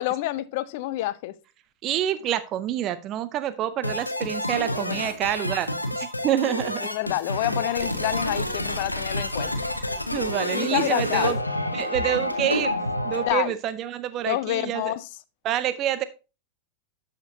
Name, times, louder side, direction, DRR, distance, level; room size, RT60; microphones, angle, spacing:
voice 1, 0.0-1.3 4.7-5.1 6.8-9.5 10.5-11.3 13.3-13.5 14.2-15.0, left 16 dB, 50° left, 0.5 m, -28 dB
voice 2, 1.8-6.9 10.1-11.4 11.7-12.7 13.0-14.9 15.4-16.0, right 11 dB, 35° right, 0.6 m, -27 dB
sound 1, 3.8-13.3, left 1 dB, 85° left, 0.8 m, -29 dB
12.0 x 5.2 x 2.8 m
figure-of-eight pair, 90°, 0 cm